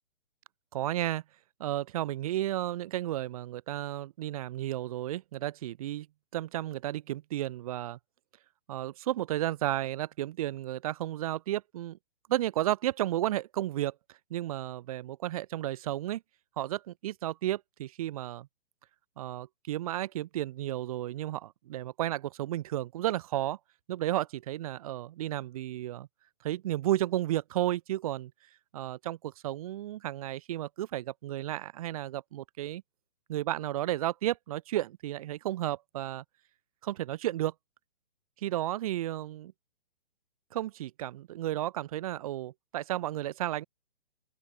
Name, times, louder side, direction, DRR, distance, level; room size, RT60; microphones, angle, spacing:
voice 1, 0.7-1.2 1.6-6.1 6.3-8.0 8.7-12.0 12.3-13.9 14.3-16.2 16.6-18.5 19.2-23.6 23.9-26.1 26.4-28.3 28.7-32.8 33.3-36.2 36.8-37.5 38.4-39.5 40.5-43.6, right 14 dB, 35° right, 4.5 m, -33 dB
open air
figure-of-eight pair, 125°, 30 cm